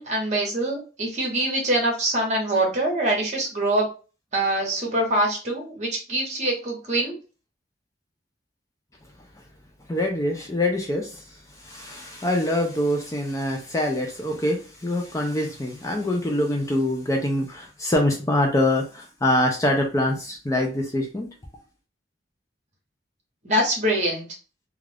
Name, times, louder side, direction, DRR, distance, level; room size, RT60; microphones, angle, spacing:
voice 1, 0.0-3.8 4.3-7.2 23.4-24.2, right 1 dB, 40° right, 0 dB, 1.0 m, -24 dB
voice 2, 9.9-21.3, left 1 dB, 15° left, 1 dB, 0.4 m, -24 dB
2.4 x 2.3 x 3.3 m, 0.35 s
head